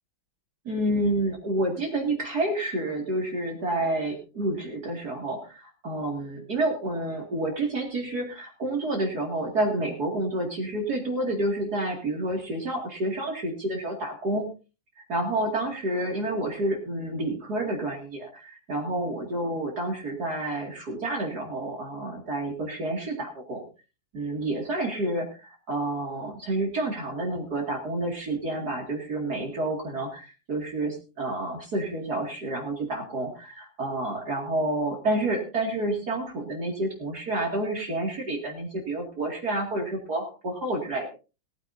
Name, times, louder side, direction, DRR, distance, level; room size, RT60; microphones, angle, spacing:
voice 1, 0.6-14.5 15.1-23.6 24.1-41.1, right 1 dB, 50° right, 1 dB, 2.8 m, -29 dB
18.5 x 14.0 x 2.6 m, 0.31 s
omnidirectional pair, 2.2 m